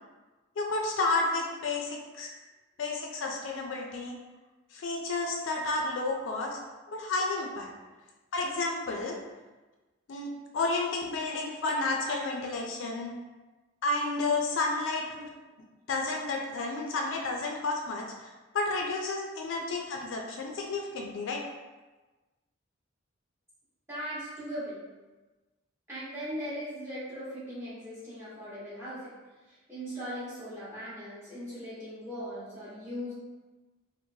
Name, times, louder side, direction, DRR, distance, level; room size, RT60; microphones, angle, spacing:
voice 1, 0.6-2.3 2.8-4.2 4.7-6.6 6.9-7.7 8.3-9.2 10.1-13.2 13.8-15.3 15.9-21.4, left 3 dB, 65° left, 0 dB, 0.3 m, -31 dB
voice 2, 23.9-24.8 25.9-29.1 29.5-33.1, equal, 10° right, -10 dB, 1.0 m, -39 dB
2.9 x 2.1 x 2.7 m, 1.2 s
head